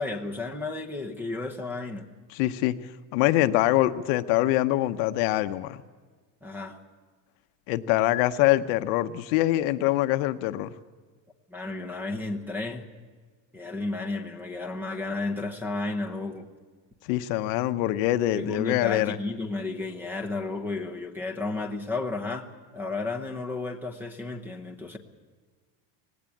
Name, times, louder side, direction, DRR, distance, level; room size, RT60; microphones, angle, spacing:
voice 1, 0.0-2.1 6.4-6.8 11.5-12.9 13.5-16.5 18.4-22.5 22.7-25.0, left 3 dB, 5° right, 8 dB, 0.9 m, -32 dB
voice 2, 2.3-2.8 3.1-5.8 7.7-10.7 17.0-19.2, left 15 dB, 65° left, 11 dB, 0.9 m, -24 dB
19.0 x 17.0 x 8.5 m, 1.5 s
cardioid pair, 175°, 48 cm